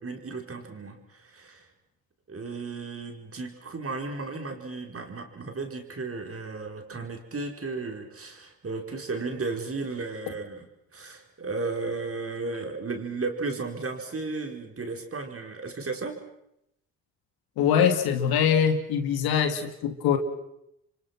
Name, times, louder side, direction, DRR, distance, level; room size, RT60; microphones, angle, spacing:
voice 1, 0.0-1.6 2.3-10.6 10.9-16.2, right 3 dB, 40° right, 3 dB, 5.0 m, -34 dB
voice 2, 17.6-20.2, left 8 dB, 75° left, 7 dB, 2.5 m, -23 dB
29.0 x 24.5 x 6.0 m, 0.79 s
hypercardioid pair, 50°, 37 cm